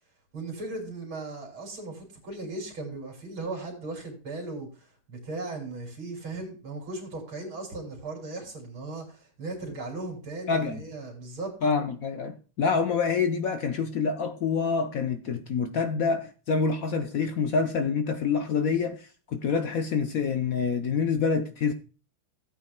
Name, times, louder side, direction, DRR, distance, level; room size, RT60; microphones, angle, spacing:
voice 1, 0.3-11.5, right 2 dB, 90° right, 3.8 m, -37 dB
voice 2, 10.5-10.8 11.6-21.7, left 5 dB, 60° left, 1.0 m, -27 dB
16.0 x 8.7 x 2.2 m
omnidirectional pair, 2.1 m